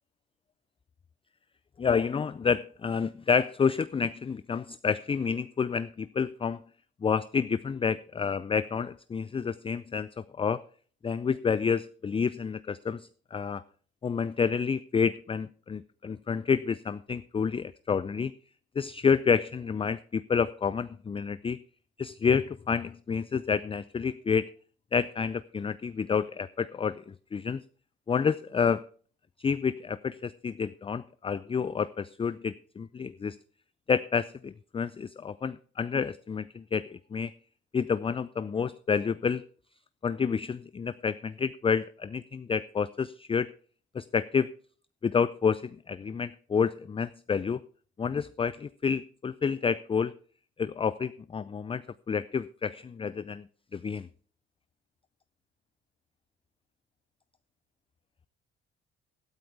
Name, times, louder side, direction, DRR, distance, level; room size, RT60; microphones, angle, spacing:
voice 1, 1.8-6.6 7.0-10.6 11.0-13.6 14.0-18.3 18.8-21.6 22.0-24.5 24.9-27.6 28.1-28.8 29.4-33.4 33.9-37.3 37.7-39.4 40.0-43.5 43.9-44.5 45.0-45.6 45.9-47.6 48.0-50.1 50.6-51.8 52.1-53.4 53.7-54.1, left 6 dB, 20° left, 16 dB, 0.4 m, -29 dB
13.0 x 12.0 x 3.4 m, 0.43 s
hypercardioid pair, 50°, 31 cm